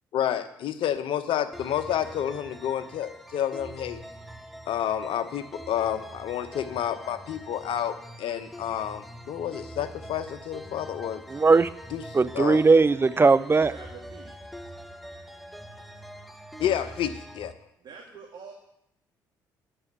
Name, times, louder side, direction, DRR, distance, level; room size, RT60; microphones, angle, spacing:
voice 1, 0.1-4.0 4.7-11.2 11.9-12.0 12.3-12.6 16.6-17.1 17.3-17.5, left 10 dB, 65° left, 10 dB, 0.9 m, -29 dB
sound 1, 1.5-17.5, equal, ahead, 0.9 m, -44 dB
voice 2, 11.3-11.7 12.1-13.7, right 4 dB, 25° right, 15 dB, 0.6 m, -19 dB
voice 3, 13.7-14.5 16.7-16.9 17.8-18.5, right 5 dB, 50° right, -2 dB, 2.4 m, -45 dB
9.0 x 6.2 x 8.0 m, 0.80 s
hypercardioid pair, 50°, 9 cm